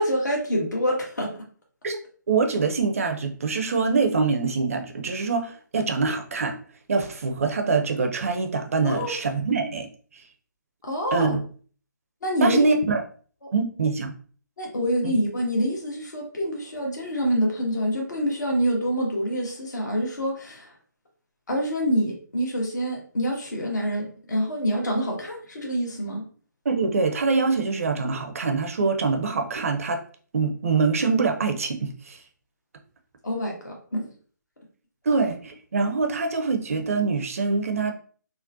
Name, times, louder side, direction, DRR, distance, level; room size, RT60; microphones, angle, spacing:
voice 1, 0.0-1.3 8.8-9.1 10.8-11.4 12.2-12.7 14.6-20.7 21.5-26.2 33.2-34.1, equal, 65° left, 0 dB, 1.2 m, -26 dB
voice 2, 2.3-6.6 6.9-9.9 10.1-10.2 11.1-11.4 12.4-13.0 13.5-14.1 15.0-15.1 26.6-30.0 30.3-32.2 35.1-37.9, right 4 dB, 45° right, 5 dB, 0.5 m, -24 dB
3.7 x 2.1 x 2.5 m, 0.43 s
figure-of-eight pair, 145°, 10 cm